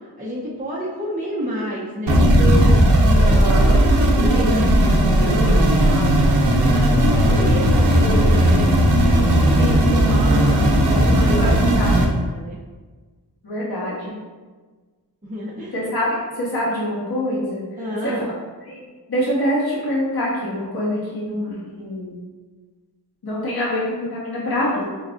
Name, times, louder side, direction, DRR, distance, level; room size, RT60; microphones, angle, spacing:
voice 1, 0.2-3.3 3.7-6.1 6.6-12.6 15.2-15.7 17.8-18.3, equal, 20° right, -8 dB, 0.6 m, -29 dB
sound 1, 2.1-12.1, right 1 dB, 80° right, 0.7 m, -16 dB
voice 2, 3.2-3.8 9.6-10.0 11.4-11.5 11.8-11.9 13.4-14.1 15.7-16.1 16.4-17.6 18.0-18.1 18.7-18.8 19.1-22.2 23.2-24.8, equal, 65° left, -8 dB, 1.2 m, -25 dB
5.3 x 2.3 x 2.4 m, 1.4 s
wide cardioid pair, 60°, 41 cm